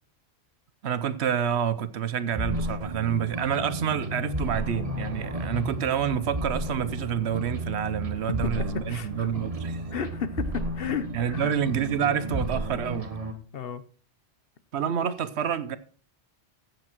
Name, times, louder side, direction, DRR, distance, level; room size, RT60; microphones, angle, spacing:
voice 1, 0.8-9.8 11.1-13.1 14.7-15.8, right 8 dB, 75° right, 1.0 m, -28 dB
sound 1, 2.3-13.3, right 1 dB, 35° right, 1.5 m, -33 dB
voice 2, 8.3-9.3 9.9-11.6 12.0-12.3 13.5-13.8, left 6 dB, 60° left, 1.0 m, -33 dB
14.5 x 8.0 x 4.5 m
omnidirectional pair, 1.1 m